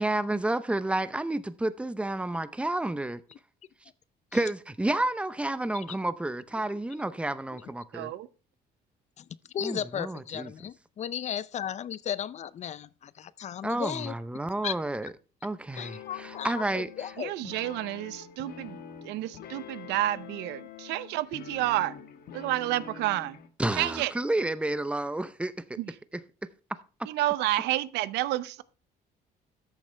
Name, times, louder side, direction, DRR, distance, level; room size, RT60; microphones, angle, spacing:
voice 1, 0.0-3.2 4.3-8.1 9.6-10.5 13.6-15.1 15.4-16.9 23.6-25.5 27.0-27.1, right 2 dB, 5° right, 0.7 m, -30 dB
voice 2, 7.9-8.3 17.2-18.8 19.0-22.0 22.3-23.4 23.8-24.1 25.8-25.9 27.1-28.6, right 16 dB, 90° right, 0.6 m, -30 dB
voice 3, 9.5-14.1 14.6-14.8 15.7-17.5, left 9 dB, 45° left, 0.5 m, -35 dB
sound 1, 15.8-23.5, left 8 dB, 65° left, 1.3 m, -45 dB
13.5 x 7.1 x 3.3 m
cardioid pair, 110°, 17 cm